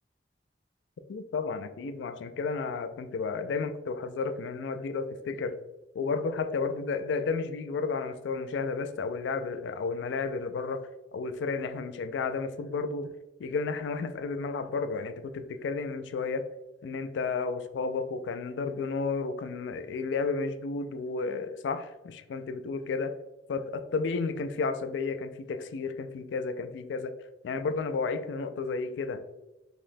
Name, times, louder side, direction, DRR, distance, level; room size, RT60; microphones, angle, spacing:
voice 1, 1.1-5.6 6.0-13.1 13.4-16.5 16.8-23.2 23.5-27.2 27.4-29.3, left 4 dB, 80° left, 0.3 m, -32 dB
3.9 x 3.0 x 2.6 m
head